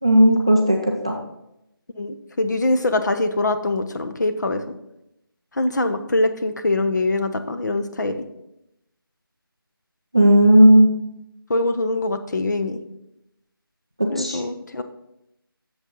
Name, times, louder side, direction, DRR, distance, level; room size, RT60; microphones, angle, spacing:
voice 1, 0.0-1.2 10.1-10.9 14.0-14.4, equal, 15° right, 1 dB, 0.3 m, -14 dB
voice 2, 2.0-4.6 5.5-8.2 11.5-12.8 14.1-14.8, left 2 dB, 50° left, 8 dB, 0.8 m, -23 dB
8.1 x 7.0 x 3.9 m, 0.83 s
figure-of-eight pair, 165°, 12 cm